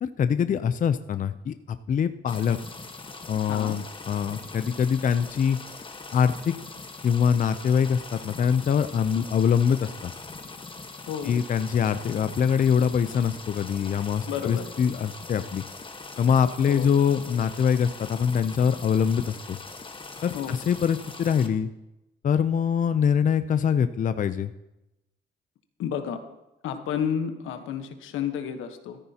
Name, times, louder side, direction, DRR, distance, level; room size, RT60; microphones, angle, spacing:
voice 1, 0.0-2.6 3.3-5.6 6.1-6.5 7.0-9.9 11.2-15.6 16.2-19.6 20.2-21.7 22.2-24.5, left 7 dB, 40° left, 11 dB, 0.5 m, -24 dB
sound 1, 2.3-21.5, left 3 dB, 25° left, 1.3 m, -42 dB
voice 2, 3.5-3.8 11.1-11.4 14.3-14.7 16.7-16.9 20.3-20.6 25.8-26.2 26.6-29.0, left 8 dB, 85° left, 7 dB, 1.1 m, -31 dB
14.0 x 13.5 x 2.9 m, 0.94 s
cardioid pair, 90°, 20 cm